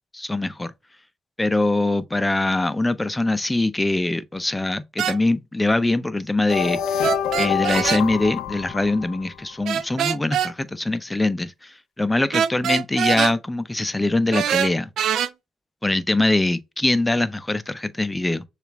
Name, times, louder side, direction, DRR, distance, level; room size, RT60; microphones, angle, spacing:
voice 1, 0.1-0.7 1.4-14.9 15.8-18.4, left 2 dB, 10° left, 0.5 m, -23 dB
sound 1, 5.0-5.2 7.0-8.0 9.7-10.5 12.3-13.3 14.3-15.3, right 9 dB, 70° right, 0.4 m, -23 dB
sound 2, 6.5-9.5, left 8 dB, 85° left, 0.5 m, -26 dB
6.6 x 2.5 x 3.0 m
cardioid pair, 90°, 0 cm